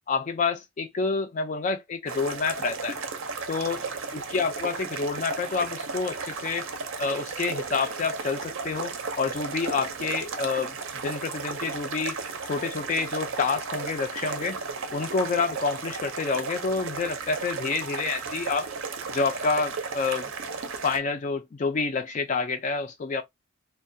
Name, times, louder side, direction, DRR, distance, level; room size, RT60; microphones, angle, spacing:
voice 1, 0.1-3.0 3.5-3.8 4.1-6.7 7.0-10.7 11.0-12.1 12.4-14.6 14.9-18.7 19.1-20.3 20.8-23.2, left 4 dB, 35° left, 0.3 m, -28 dB
sound 1, 2.1-21.0, right 4 dB, 60° right, 0.5 m, -34 dB
2.3 x 2.2 x 2.6 m
head